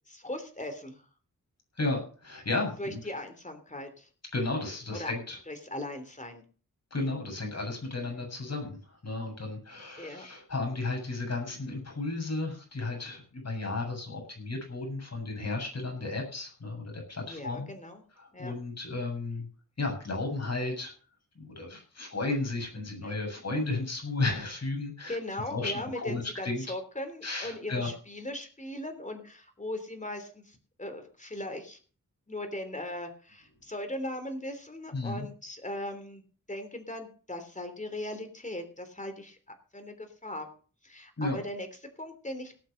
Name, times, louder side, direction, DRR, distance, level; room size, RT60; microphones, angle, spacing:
voice 1, 0.1-1.0 2.8-4.1 4.9-5.1 5.5-6.4 10.0-10.2 17.3-18.0 18.3-18.5 23.0-23.2 25.1-31.8 32.3-36.2 36.5-39.4 39.7-40.5 40.8-41.7 42.0-42.5, left 1 dB, 25° left, 7 dB, 3.3 m, -39 dB
voice 2, 1.8-3.0 4.3-5.4 6.9-17.7 18.2-19.5 19.8-20.9 21.4-25.2 25.5-26.6 27.2-27.9 34.9-35.3 41.2-41.4, left 2 dB, 50° left, 2 dB, 7.6 m, -33 dB
18.0 x 7.3 x 6.6 m, 0.41 s
wide cardioid pair, 105°, 32 cm